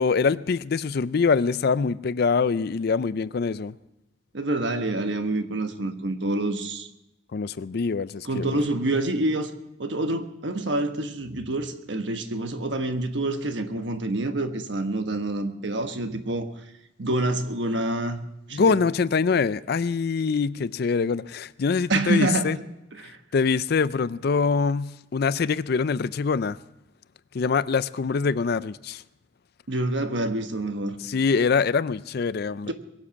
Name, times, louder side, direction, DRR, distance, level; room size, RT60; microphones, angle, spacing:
voice 1, 0.0-3.7 7.3-8.6 18.5-22.6 23.3-26.6 27.3-29.0 31.0-32.7, left 5 dB, 55° left, 0.4 m, -24 dB
voice 2, 4.3-6.9 8.2-9.5 9.8-16.5 17.0-18.2 18.5-18.8 21.9-22.6 22.9-23.2 29.7-31.0 32.7-32.8, right 2 dB, 65° right, 1.3 m, -27 dB
22.0 x 7.6 x 7.1 m
head